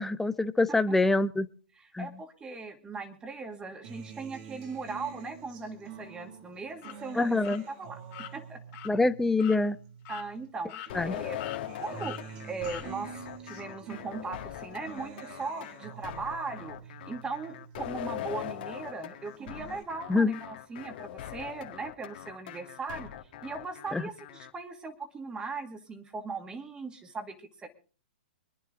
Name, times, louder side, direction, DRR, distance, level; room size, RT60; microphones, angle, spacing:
voice 1, 0.0-1.5 1.9-2.1 7.2-7.6 8.9-9.8 10.9-11.2 20.1-20.3 23.9-24.0, left 3 dB, 5° left, 12 dB, 0.7 m, -25 dB
voice 2, 1.8-8.0 8.3-8.6 10.1-11.4 11.8-12.2 12.5-16.8 17.1-23.1 23.4-27.7, right 4 dB, 15° right, 6 dB, 2.4 m, -39 dB
Acoustic guitar, 3.8-10.5 10.9-18.5 18.9-19.8, right 7 dB, 45° right, 2.7 m, -47 dB
sound 1, 6.8-7.0 7.4-7.6 8.1-8.3 8.7-8.9 9.4-9.6 10.1-10.3 10.7-11.1 11.4-11.6 12.0-12.2 12.6-12.9, left 11 dB, 40° left, 2.7 m, -42 dB
sound 2, 10.9-24.5, left 12 dB, 55° left, 2.0 m, -41 dB
25.5 x 10.0 x 3.9 m, 0.40 s
hypercardioid pair, 135°, 6 cm